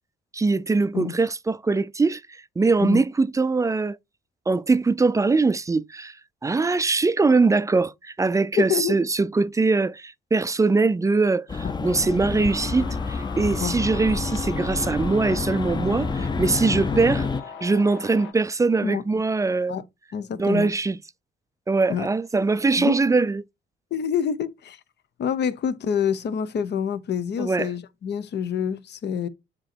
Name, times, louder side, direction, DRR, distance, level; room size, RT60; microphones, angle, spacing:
voice 1, 0.3-4.0 4.5-6.2 6.4-17.3 17.6-19.8 20.4-21.0 21.7-23.4 27.4-27.7, right 3 dB, 15° right, 0.4 m, -22 dB
voice 2, 8.6-9.0 13.6-13.7 16.9-17.0 18.8-19.0 19.7-19.8 20.1-20.7 21.9-22.1 22.8-22.9 23.9-24.8 25.2-29.3, left 8 dB, 60° left, 0.9 m, -26 dB
sound 1, 11.5-17.4, left 4 dB, 20° left, 0.7 m, -28 dB
sound 2, 12.5-18.3, left 7 dB, 80° left, 1.5 m, -40 dB
7.6 x 3.0 x 4.4 m
cardioid pair, 90°, 20 cm